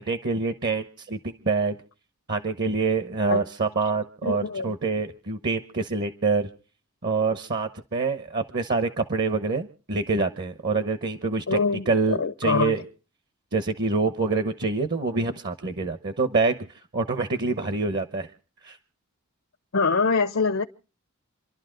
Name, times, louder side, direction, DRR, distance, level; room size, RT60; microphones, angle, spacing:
voice 1, 0.0-1.8 2.3-6.5 7.0-11.6 11.9-12.8 13.5-16.7 16.9-18.3 18.6-18.8, right 3 dB, 50° right, 10 dB, 1.0 m, -26 dB
voice 2, 4.2-4.7 11.5-12.7 19.7-20.6, left 4 dB, 75° left, 7 dB, 0.8 m, -24 dB
28.5 x 11.5 x 3.9 m, 0.38 s
head